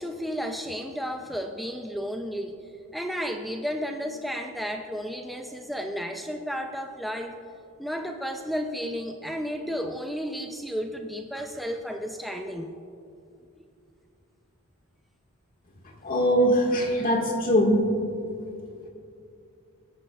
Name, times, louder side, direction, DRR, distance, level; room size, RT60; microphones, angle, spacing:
voice 1, 0.0-2.6 2.9-7.4 7.8-12.7, equal, ahead, 4 dB, 0.4 m, -32 dB
voice 2, 16.0-17.8, equal, 40° left, 0 dB, 1.8 m, -22 dB
20.5 x 10.0 x 2.4 m, 2.5 s
head